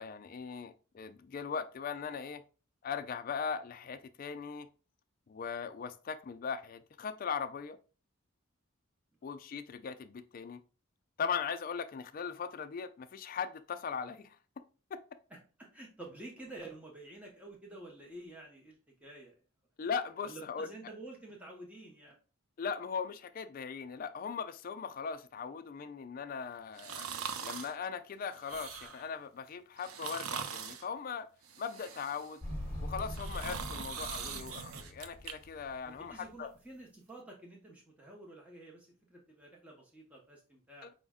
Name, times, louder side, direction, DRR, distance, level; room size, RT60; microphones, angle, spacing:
voice 1, 0.0-2.4 2.8-4.7 5.3-7.8 9.2-10.6 11.2-14.4 14.9-15.0 19.8-20.7 22.6-27.1 27.4-31.3 31.6-32.4 32.8-36.5 40.8-40.9, left 6 dB, 40° left, 0.3 m, -39 dB
voice 2, 15.6-19.3 20.2-22.2 35.8-40.9, right 2 dB, 5° right, 0.6 m, -50 dB
sound 1, 26.8-27.7 28.3-29.1 29.8-30.9 31.4-32.4 32.9-35.3 35.7-35.8, right 7 dB, 80° right, 0.5 m, -42 dB
Motorcycle, 32.4-36.3, equal, 30° right, 1.1 m, -43 dB
5.0 x 2.1 x 3.5 m
head